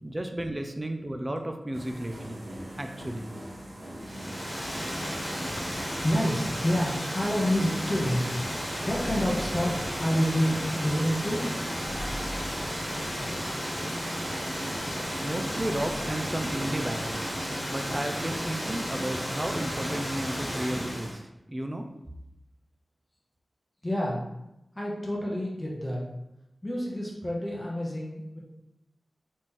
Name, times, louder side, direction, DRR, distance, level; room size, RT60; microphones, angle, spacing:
voice 1, 0.0-2.4 2.8-3.3 15.2-17.3 17.7-21.2 21.5-21.9, right 1 dB, 20° right, 5 dB, 0.4 m, -33 dB
sound 1, 1.7-21.1, equal, 45° right, 0.8 m, -41 dB
Water, 4.0-21.2, equal, 5° right, 1.4 m, -33 dB
voice 2, 6.0-8.2 8.8-11.5 23.8-24.2 24.7-26.0 26.6-28.4, equal, 20° left, -3 dB, 0.8 m, -28 dB
4.1 x 3.1 x 3.8 m, 0.89 s
wide cardioid pair, 100°, 0 cm